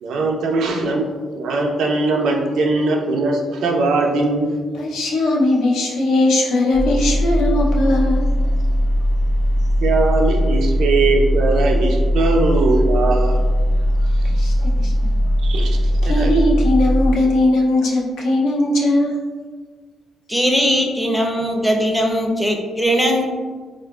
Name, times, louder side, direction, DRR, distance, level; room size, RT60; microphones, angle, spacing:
voice 1, 0.0-4.5 9.8-13.4 15.4-16.3, right 3 dB, 75° right, 1 dB, 0.5 m, -20 dB
voice 2, 4.8-8.3 14.3-15.1 16.0-19.2, left 1 dB, 85° left, -2 dB, 0.6 m, -19 dB
sound 1, 6.7-17.1, equal, 45° left, 1.1 m, -18 dB
voice 3, 20.3-23.3, equal, ahead, 1 dB, 0.5 m, -19 dB
3.6 x 2.5 x 2.3 m, 1.5 s
cardioid pair, 90°, 0 cm